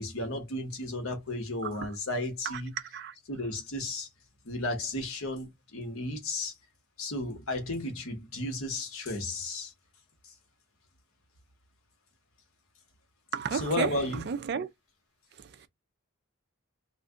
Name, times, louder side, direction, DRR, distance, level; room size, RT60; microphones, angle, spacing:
voice 1, 0.0-2.7 3.3-4.1 4.4-6.5 7.0-9.7 13.5-14.3, left 2 dB, 75° left, 1.1 m, -33 dB
voice 2, 13.3-14.7 15.4-15.7, right 6 dB, 50° right, 0.4 m, -33 dB
2.6 x 2.5 x 3.5 m
head